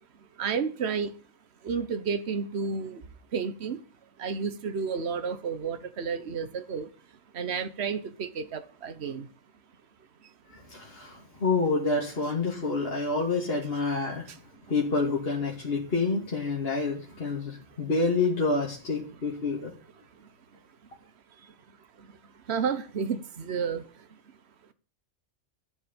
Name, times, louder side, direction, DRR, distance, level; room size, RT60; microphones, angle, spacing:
voice 1, 0.4-1.1 1.6-3.0 3.3-3.8 4.2-6.9 7.3-9.3 14.3-14.4 21.4-21.5 22.0-22.2 22.5-24.1, right 6 dB, 60° right, 1.4 m, -31 dB
voice 2, 10.5-14.3 14.7-19.7, left 3 dB, 50° left, 2.9 m, -28 dB
13.5 x 7.2 x 8.7 m
omnidirectional pair, 1.3 m